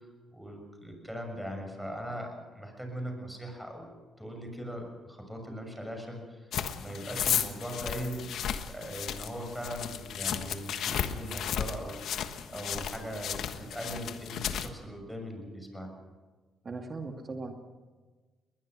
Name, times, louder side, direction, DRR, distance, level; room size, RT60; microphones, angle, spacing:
voice 1, 0.3-3.9 4.2-6.5 6.8-8.3 8.6-12.0 12.5-15.9, equal, ahead, 3 dB, 6.6 m, -40 dB
sound 1, 6.5-14.7, left 9 dB, 75° left, 1.4 m, -34 dB
voice 2, 16.6-17.6, right 3 dB, 35° right, 4 dB, 2.3 m, -38 dB
21.0 x 21.0 x 6.3 m, 1.3 s
cardioid pair, 90°, 0 cm